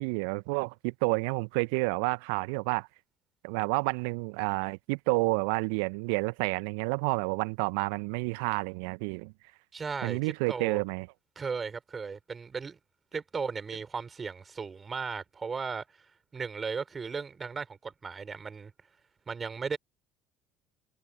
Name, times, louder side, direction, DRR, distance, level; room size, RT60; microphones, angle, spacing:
voice 1, 0.0-2.9 3.4-9.3 10.0-11.1, right 32 dB, 65° right, 1.5 m, -30 dB
voice 2, 9.7-10.8 11.3-12.8 13.1-15.8 16.3-18.7 19.3-19.8, right 5 dB, 30° right, 4.8 m, -36 dB
figure-of-eight pair, 60°, 0 cm